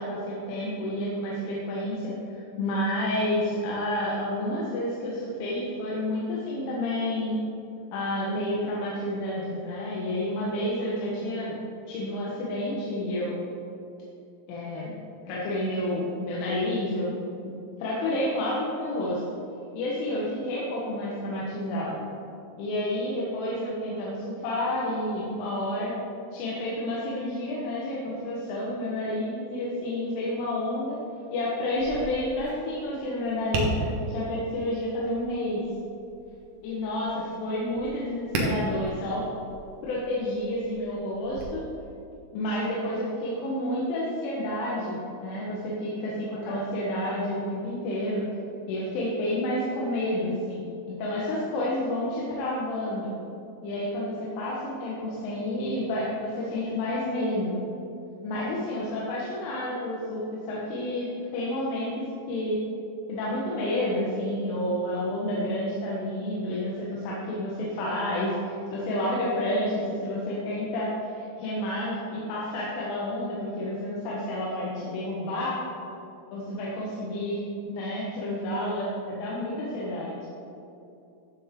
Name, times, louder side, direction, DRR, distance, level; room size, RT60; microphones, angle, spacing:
voice 1, 0.0-7.4 7.9-11.6 11.9-13.3 14.5-14.9 15.3-17.2 17.8-19.2 19.8-22.0 22.6-25.9 26.3-31.0 31.3-35.6 36.6-39.2 39.8-41.6 42.3-48.3 48.7-53.1 53.6-57.6 58.2-61.1 61.3-62.6 63.1-75.6 76.3-77.4 77.7-80.3, left 1 dB, 80° left, -6 dB, 3.8 m, -30 dB
Tap, 31.7-41.4, right 1 dB, 70° right, 1.9 m, -36 dB
13.5 x 8.1 x 3.7 m, 2.8 s
omnidirectional pair, 5.7 m